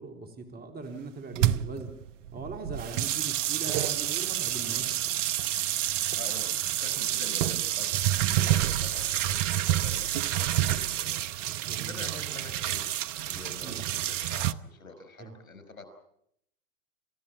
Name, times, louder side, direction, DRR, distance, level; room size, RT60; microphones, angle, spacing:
voice 1, 0.0-1.9 2.3-5.2 11.6-12.0 13.6-13.8 15.2-15.3, right 3 dB, 25° right, 5 dB, 3.8 m, -40 dB
sound 1, 1.3-14.5, right 13 dB, 65° right, 1.0 m, -28 dB
voice 2, 6.1-11.2 11.9-12.9 13.3-15.9, left 3 dB, 90° left, 9 dB, 5.4 m, -46 dB
29.5 x 15.0 x 8.7 m, 0.75 s
hypercardioid pair, 105°, 41 cm